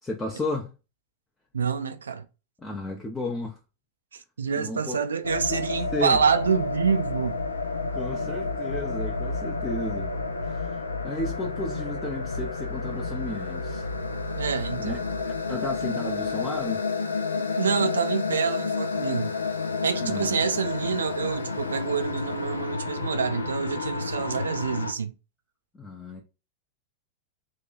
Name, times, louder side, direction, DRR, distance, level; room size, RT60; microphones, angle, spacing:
voice 1, 0.0-0.8 2.6-3.6 4.5-5.0 5.5-5.6 5.9-6.2 7.9-10.1 10.5-10.7 11.0-13.9 14.8-16.8 20.0-20.4 25.7-26.2, left 1 dB, 15° left, 0.6 m, -33 dB
voice 2, 1.5-2.3 4.1-7.4 14.4-15.0 17.4-19.3 19.8-25.1, right 6 dB, 70° right, 0.3 m, -27 dB
sound 1, 5.2-24.9, left 4 dB, 75° left, 0.4 m, -30 dB
2.9 x 2.3 x 3.9 m
figure-of-eight pair, 90°, 0 cm